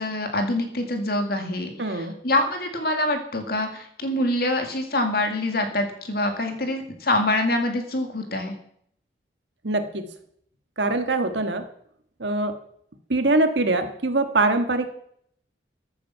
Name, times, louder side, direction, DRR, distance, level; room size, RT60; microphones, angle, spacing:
voice 1, 0.0-8.5, left 1 dB, 55° left, 5 dB, 2.2 m, -25 dB
voice 2, 1.8-2.1 9.6-10.1 10.8-11.6 12.2-12.5 13.1-14.9, right 2 dB, 75° right, 7 dB, 1.6 m, -23 dB
15.0 x 8.8 x 5.7 m, 0.68 s
head